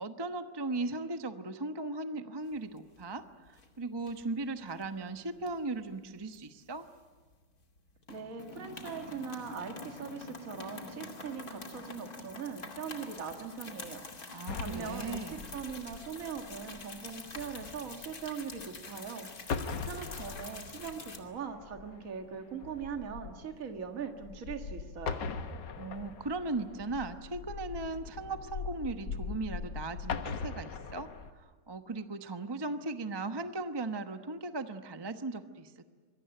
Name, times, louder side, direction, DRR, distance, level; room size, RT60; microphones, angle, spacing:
voice 1, 0.0-3.2 3.5-6.8 14.3-15.6 25.8-35.9, right 3 dB, 20° right, 8 dB, 0.8 m, -37 dB
sound 1, 2.5-3.2 3.5-3.7 4.1-4.9 5.4-7.3 7.6-21.2, left 3 dB, 50° left, 3.1 m, -46 dB
voice 2, 8.1-25.2, right 6 dB, 45° right, 4 dB, 2.1 m, -41 dB
sound 2, 14.5-19.1 19.4-31.3, left 5 dB, 70° left, 1.9 m, -41 dB
26.0 x 22.5 x 9.0 m, 1.5 s
omnidirectional pair, 2.0 m